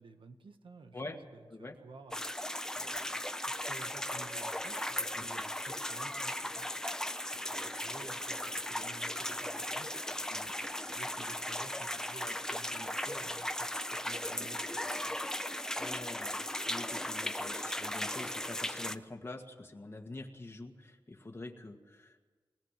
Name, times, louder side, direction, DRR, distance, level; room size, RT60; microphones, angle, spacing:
voice 1, 0.0-2.2 2.7-3.2 3.5-6.7 7.3-10.3 10.8-15.2, right 3 dB, 80° right, 7 dB, 1.4 m, -53 dB
sound 1, 2.1-19.0, left 1 dB, 5° left, 0.7 m, -37 dB
voice 2, 12.7-13.1 15.8-22.2, left 2 dB, 30° left, 1 dB, 1.8 m, -46 dB
23.0 x 18.0 x 7.4 m, 1.3 s
wide cardioid pair, 130°, 9 cm